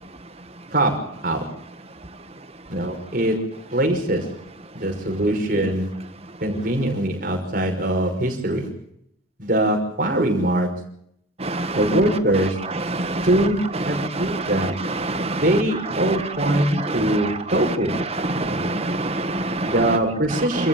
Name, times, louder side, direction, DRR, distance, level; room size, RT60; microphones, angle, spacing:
voice 1, 0.7-1.6 2.7-4.4 4.7-6.0 6.4-8.7 9.4-10.7 11.7-12.6 13.2-14.8 15.3-18.0 18.4-18.6 19.6-20.7, right 1 dB, 50° right, 5.9 m, -22 dB
voice 2, 11.4-12.0 12.7-13.3 13.9-15.6 16.0-19.7 20.3-20.7, right 2 dB, 35° right, 1.8 m, -26 dB
28.0 x 14.5 x 7.5 m
head